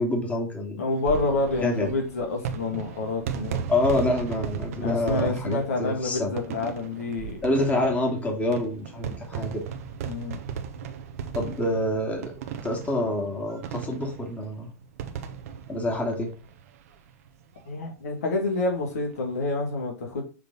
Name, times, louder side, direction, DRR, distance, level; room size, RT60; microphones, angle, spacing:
voice 1, 0.0-0.8 1.6-1.9 3.7-6.3 7.4-9.6 11.3-12.3 12.6-14.7 15.7-16.3, left 1 dB, 15° left, 1 dB, 2.3 m, -27 dB
voice 2, 0.8-3.6 4.8-7.4 10.1-10.4 17.7-20.2, left 3 dB, 70° left, 1 dB, 2.1 m, -28 dB
sound 1, 0.9-17.0 17.3-17.4 17.6-17.7 18.9-19.2, right 7 dB, 65° right, 1.1 m, -36 dB
7.2 x 4.0 x 4.0 m, 0.34 s
hypercardioid pair, 95°, 8 cm